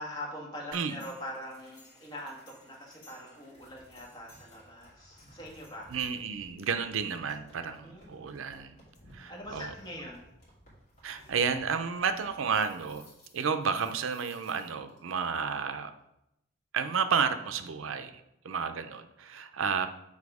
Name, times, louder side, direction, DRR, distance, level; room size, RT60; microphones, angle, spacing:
voice 1, 0.0-5.9 7.8-8.3 9.2-10.3, left 1 dB, 20° left, -2 dB, 1.5 m, -43 dB
sound 1, 0.7-15.0, equal, 35° left, 2.4 m, -57 dB
voice 2, 5.9-8.8 9.1-9.7 11.0-13.1 13.3-15.9 16.7-19.9, right 6 dB, 75° right, 9 dB, 0.5 m, -31 dB
7.3 x 4.2 x 4.8 m, 0.84 s
head